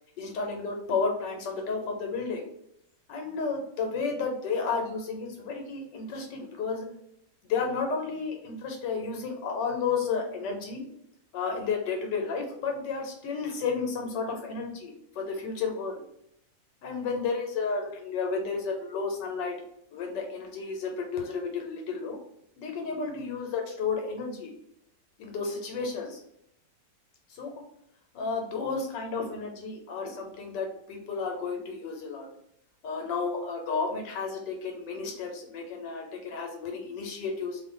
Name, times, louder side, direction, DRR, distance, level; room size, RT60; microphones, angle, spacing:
voice 1, 0.2-2.4 3.1-6.9 7.5-10.8 11.3-16.0 16.8-19.5 19.9-22.2 22.6-24.5 25.2-26.2 27.3-27.5 28.1-32.3 32.8-37.6, left 4 dB, 80° left, 2 dB, 1.4 m, -32 dB
2.7 x 2.5 x 3.6 m, 0.77 s
omnidirectional pair, 1.9 m